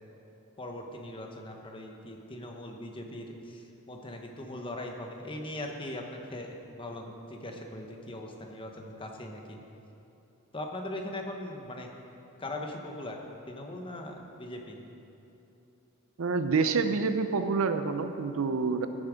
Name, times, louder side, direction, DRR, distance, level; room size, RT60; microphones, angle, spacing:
voice 1, 0.6-9.6 10.5-11.9 12.4-13.2 13.5-14.8, left 1 dB, 25° left, 2 dB, 1.0 m, -40 dB
voice 2, 16.2-18.9, right 4 dB, 65° right, 9 dB, 0.5 m, -27 dB
14.0 x 7.1 x 5.1 m, 2.9 s
head